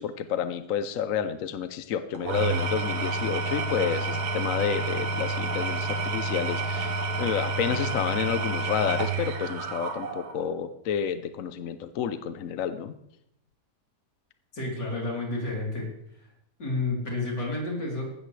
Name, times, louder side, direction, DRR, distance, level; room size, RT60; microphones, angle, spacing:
voice 1, 0.0-12.9, left 8 dB, 60° left, 10 dB, 1.0 m, -30 dB
Engine / Tools, 2.1-10.5, right 3 dB, 70° right, 1.6 m, -29 dB
voice 2, 14.5-15.9 16.2-16.3 16.6-18.0, left 2 dB, 85° left, -2 dB, 4.2 m, -30 dB
16.0 x 12.5 x 3.3 m, 0.76 s
omnidirectional pair, 1.8 m